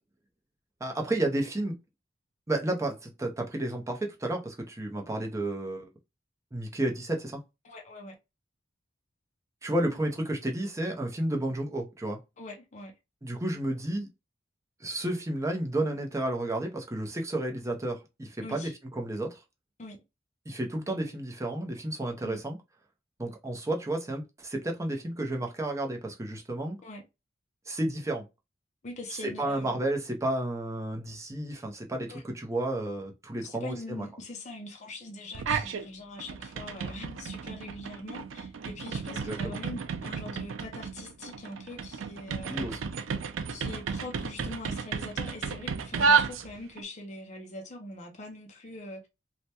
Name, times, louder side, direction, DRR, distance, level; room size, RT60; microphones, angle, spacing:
voice 1, 0.8-1.7 2.5-5.9 6.5-7.4 9.6-12.2 13.2-14.1 14.8-19.4 20.5-22.6 23.2-26.8 27.7-28.2 29.2-34.1 39.1-39.6 42.5-42.8, right 1 dB, 15° right, 0.6 m, -32 dB
voice 2, 7.6-8.2 12.4-12.9 18.4-18.7 19.8-20.0 22.2-22.4 26.8-27.0 28.8-29.8 32.1-32.2 33.4-42.7 43.5-49.1, left 2 dB, 40° left, 0.6 m, -43 dB
sound 1, 35.3-35.9 36.2-46.8, right 5 dB, 80° right, 0.4 m, -32 dB
3.2 x 2.1 x 2.8 m
head